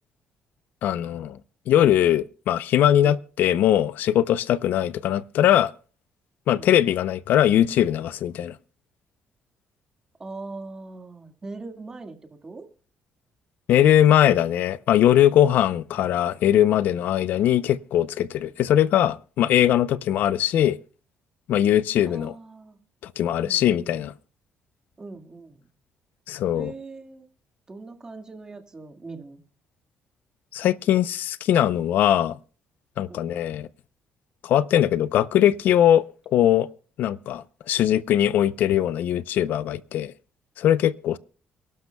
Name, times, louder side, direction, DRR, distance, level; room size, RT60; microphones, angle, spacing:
voice 1, 0.8-1.4 1.7-5.7 6.5-8.5 13.7-20.8 21.5-22.3 23.2-24.1 26.3-26.7 30.5-32.4 33.0-33.7 34.4-36.0 36.3-36.7 37.0-40.1 40.6-41.2, left 11 dB, 70° left, 0.6 m, -20 dB
voice 2, 10.2-12.7 22.1-22.8 23.4-23.9 25.0-25.7 26.5-27.3 27.7-29.4 33.1-33.4, right 3 dB, 20° right, 1.9 m, -41 dB
29.0 x 12.0 x 2.3 m
cardioid pair, 135°, 3 cm